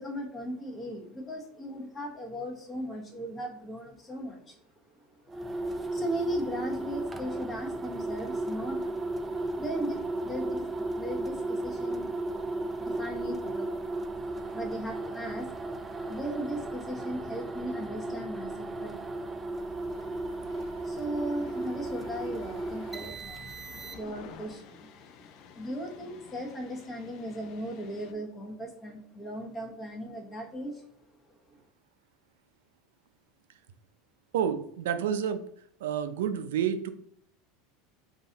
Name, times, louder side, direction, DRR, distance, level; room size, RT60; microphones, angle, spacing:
voice 1, 0.0-4.6 4.9-5.0 5.3-5.4 5.9-9.0 9.6-12.5 12.8-13.8 14.5-15.5 16.1-19.1 20.8-23.5 23.7-24.9 25.5-30.9 31.3-31.6, equal, 20° left, 1 dB, 1.1 m, -37 dB
sound 1, 5.3-24.3, right 2 dB, 15° right, 0.4 m, -35 dB
sound 2, 19.5-28.1, left 7 dB, 50° left, 0.4 m, -52 dB
voice 2, 34.3-35.4 35.8-36.9, right 8 dB, 90° right, 10 dB, 0.4 m, -29 dB
3.9 x 2.6 x 3.9 m, 0.69 s
supercardioid pair, 125°, 0 cm